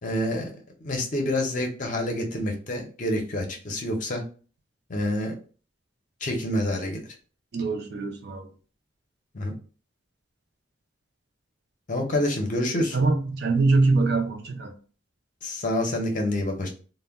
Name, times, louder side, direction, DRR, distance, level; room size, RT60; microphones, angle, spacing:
voice 1, 0.0-4.2 4.9-5.4 6.2-7.0 9.3-9.5 11.9-13.0 15.4-16.7, left 1 dB, 40° left, 0.6 m, -27 dB
voice 2, 7.5-8.5 12.9-14.7, right 3 dB, 55° right, 0.5 m, -23 dB
2.2 x 2.1 x 3.4 m
head